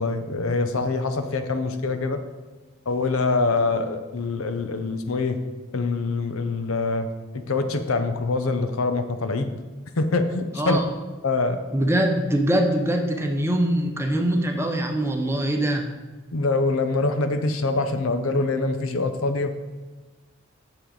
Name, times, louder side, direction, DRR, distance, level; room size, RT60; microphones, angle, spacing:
voice 1, 0.0-2.2 2.9-5.4 5.7-7.1 7.3-9.5 10.0-10.8 11.2-11.6 16.3-19.5, left 3 dB, 90° left, 8 dB, 0.7 m, -24 dB
voice 2, 11.7-15.8, right 1 dB, 10° right, 4 dB, 0.7 m, -23 dB
8.6 x 6.9 x 3.9 m, 1.2 s
head